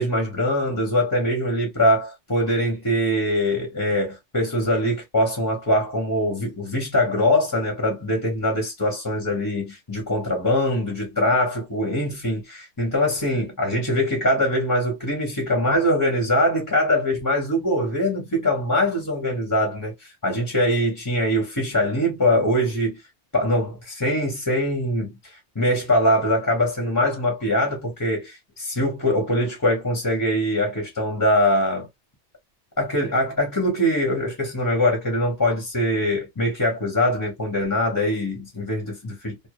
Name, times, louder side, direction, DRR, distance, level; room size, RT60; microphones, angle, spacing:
voice 1, 0.0-23.0 23.3-31.9 32.8-39.4, left 1 dB, 20° left, 0.7 m, -23 dB
2.1 x 2.0 x 2.9 m
omnidirectional pair, 1.2 m